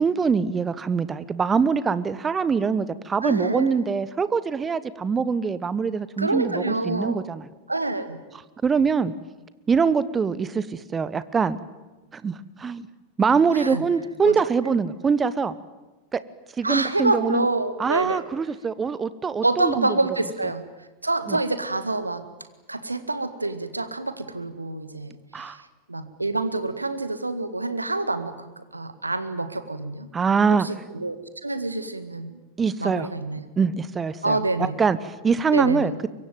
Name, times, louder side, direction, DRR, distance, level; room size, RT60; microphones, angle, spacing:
voice 1, 0.0-7.4 8.6-9.1 9.7-10.6 10.9-11.6 12.1-12.3 12.6-12.8 13.2-15.5 16.1-16.2 16.6-17.4 17.8-19.9 21.3-21.4 25.3-25.6 30.1-30.7 32.6-33.1 33.6-34.4 34.8-35.0 35.2-35.9, right 5 dB, 20° right, 16 dB, 1.1 m, -23 dB
voice 2, 3.2-3.8 6.2-7.2 7.7-8.2 13.5-13.8 14.2-14.4 16.6-18.2 19.4-22.2 22.7-30.1 30.5-32.4 32.8-33.4 34.2-34.7 35.5-35.9, right 2 dB, 85° right, 11 dB, 1.9 m, -27 dB
24.0 x 23.0 x 9.2 m, 1.1 s
figure-of-eight pair, 90°, 0 cm